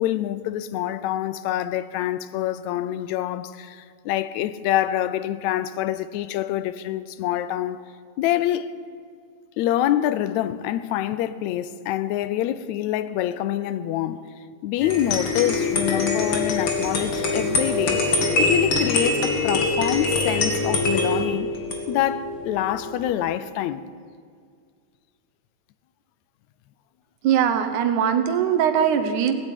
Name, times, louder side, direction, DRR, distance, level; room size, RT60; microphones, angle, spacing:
voice 1, 0.0-7.8 8.2-8.7 9.6-14.3 14.6-18.0 18.4-21.5 21.9-23.8, left 12 dB, 80° left, 1.9 m, -26 dB
sound 1, 14.8-21.3, left 7 dB, 60° left, 1.9 m, -36 dB
sound 2, 14.8-23.1, left 2 dB, 45° left, 2.4 m, -24 dB
voice 2, 27.2-29.3, right 8 dB, 90° right, 2.5 m, -21 dB
18.0 x 8.5 x 9.1 m
omnidirectional pair, 3.4 m